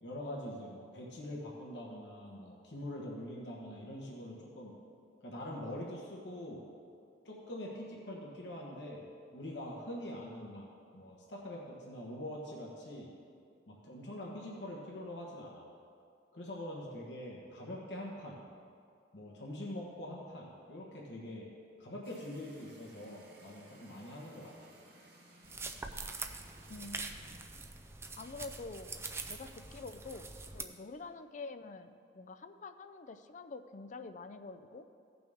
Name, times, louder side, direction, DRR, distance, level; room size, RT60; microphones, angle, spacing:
voice 1, 0.0-4.8 5.2-6.6 7.2-9.1 9.3-10.7 10.9-13.1 13.7-15.6 16.3-18.4 19.1-21.5 21.8-24.8, left 1 dB, 70° left, -3 dB, 1.3 m, -44 dB
sound 1, 22.0-27.5, right 1 dB, 60° right, 1.4 m, -60 dB
sound 2, 25.4-30.6, right 3 dB, 15° right, 0.4 m, -44 dB
voice 2, 26.7-27.4 28.1-34.9, left 3 dB, 45° left, 9 dB, 0.4 m, -47 dB
15.5 x 6.0 x 3.6 m, 2.4 s
head